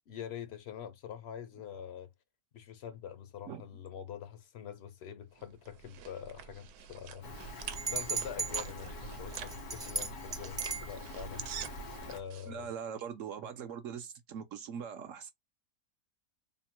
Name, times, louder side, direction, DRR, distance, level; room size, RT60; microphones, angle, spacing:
voice 1, 0.1-2.1 2.5-7.3 7.9-11.4 12.0-12.7, left 9 dB, 65° left, 0.7 m, -45 dB
sound 1, 5.4-12.5, right 9 dB, 90° right, 1.1 m, -47 dB
Rain, 7.2-12.2, left 1 dB, 90° left, 1.8 m, -45 dB
sound 2, 7.8-8.7 9.3-10.9, right 4 dB, 25° right, 0.5 m, -35 dB
voice 2, 12.5-15.3, right 7 dB, 65° right, 0.9 m, -41 dB
3.7 x 2.1 x 4.3 m
omnidirectional pair, 1.6 m